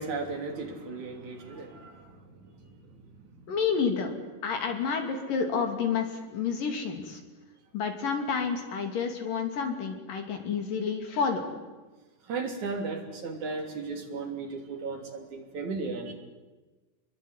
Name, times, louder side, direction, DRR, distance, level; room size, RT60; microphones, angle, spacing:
voice 1, 0.0-2.8 3.2-3.3 12.3-16.1, right 4 dB, 55° right, 3 dB, 4.6 m, -36 dB
voice 2, 3.5-4.1 4.4-7.2 7.7-11.4, left 6 dB, 65° left, 5 dB, 4.4 m, -29 dB
27.5 x 22.0 x 9.7 m, 1.2 s
omnidirectional pair, 4.2 m